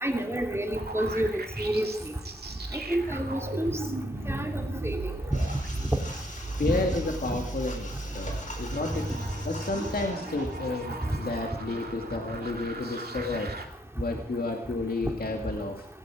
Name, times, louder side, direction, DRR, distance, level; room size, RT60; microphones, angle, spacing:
voice 1, 0.0-2.1 2.9-3.8 4.3-5.0, right 1 dB, 15° right, 3 dB, 3.3 m, -29 dB
sound 1, 0.7-13.7, right 2 dB, 75° right, 2.5 m, -37 dB
sound 2, 5.3-10.6, left 1 dB, 55° left, 5.1 m, -43 dB
voice 2, 6.6-7.9 8.1-9.1 9.4-13.5 14.0-15.9, left 2 dB, 70° left, 2 dB, 2.4 m, -31 dB
17.5 x 16.5 x 5.0 m, 0.67 s
wide cardioid pair, 45°, 16 cm